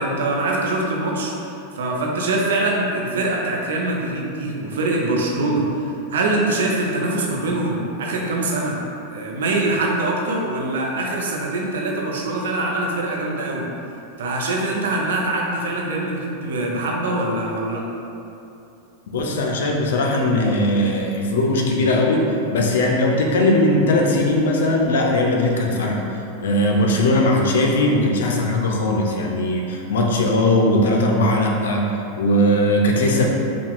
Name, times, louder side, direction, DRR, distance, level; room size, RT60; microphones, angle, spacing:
voice 1, 0.0-8.8 9.1-13.7 14.2-17.8, right 2 dB, 80° right, -1 dB, 0.7 m, -23 dB
voice 2, 19.1-22.2 22.5-26.0 26.4-31.9 32.2-33.2, left 1 dB, 80° left, 0 dB, 0.6 m, -19 dB
5.0 x 2.4 x 3.6 m, 2.8 s
hypercardioid pair, 115°, 0 cm